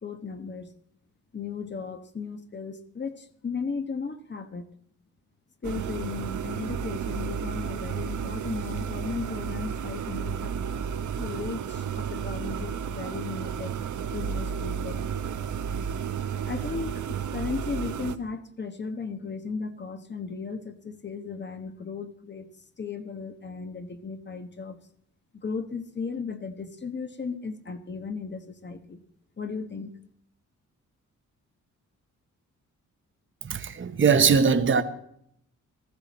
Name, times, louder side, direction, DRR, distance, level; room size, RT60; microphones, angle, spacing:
voice 1, 0.0-0.7 1.3-4.7 5.6-10.5 11.2-13.8 14.1-15.1 16.4-22.5 22.8-24.8 25.3-29.0 29.4-30.0, left 5 dB, 35° left, 1.2 m, -36 dB
sound 1, 5.6-18.2, right 7 dB, 70° right, 0.9 m, -32 dB
voice 2, 33.4-34.8, right 6 dB, 40° right, 1.0 m, -21 dB
15.5 x 14.0 x 4.2 m
cardioid pair, 90°, 31 cm